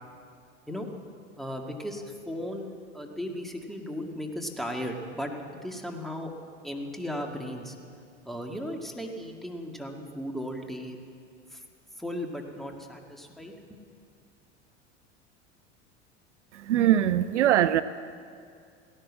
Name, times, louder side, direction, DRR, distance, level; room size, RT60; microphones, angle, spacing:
voice 1, 1.4-6.3 6.6-7.8 8.2-11.0 11.5-11.6 12.0-13.6, equal, ahead, 2 dB, 2.0 m, -36 dB
voice 2, 16.5-17.8, right 11 dB, 80° right, 15 dB, 0.6 m, -22 dB
16.0 x 11.0 x 7.5 m, 2.3 s
hypercardioid pair, 80°, 35 cm